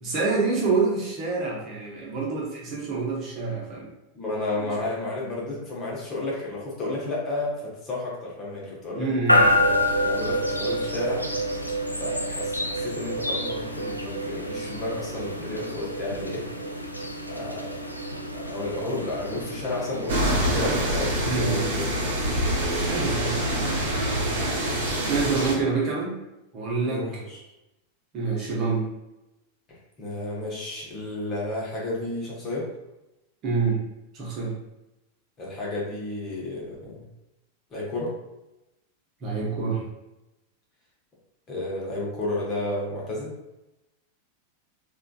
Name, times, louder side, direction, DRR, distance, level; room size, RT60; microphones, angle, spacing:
voice 1, 0.0-3.9 4.6-4.7 9.0-9.6 21.2-21.6 22.8-23.6 25.1-26.1 26.5-27.0 28.1-28.8 33.4-33.8 34.1-34.5 39.2-39.8, right 4 dB, 35° right, -5 dB, 1.0 m, -27 dB
voice 2, 4.1-11.3 12.0-16.5 17.3-17.7 18.3-22.2 26.8-27.4 30.0-32.7 35.4-37.1 37.7-38.1 41.5-43.3, left 2 dB, 30° left, -4 dB, 1.0 m, -32 dB
sound 1, 9.3-22.3, left 1 dB, 90° left, 0.3 m, -28 dB
sound 2, 20.1-25.5, right 1 dB, 55° right, 0.7 m, -25 dB
3.6 x 2.5 x 2.3 m, 0.95 s
figure-of-eight pair, 90°, 0 cm